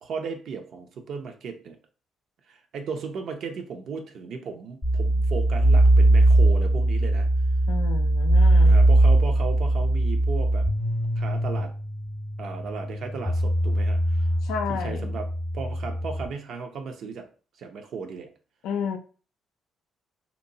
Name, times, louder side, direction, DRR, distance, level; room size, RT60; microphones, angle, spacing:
voice 1, 0.0-1.8 2.5-7.3 8.6-10.7 11.2-11.7 12.4-14.3 14.7-15.3 15.5-17.3 17.6-18.3, right 5 dB, 70° right, 6 dB, 0.5 m, -36 dB
sound 1, 4.8-16.2, right 1 dB, 30° left, 0.7 m, -21 dB
voice 2, 7.7-8.8 14.4-15.2 18.6-19.0, left 7 dB, 90° left, 6 dB, 0.3 m, -31 dB
2.8 x 2.1 x 2.7 m, 0.38 s
cardioid pair, 90°, 0 cm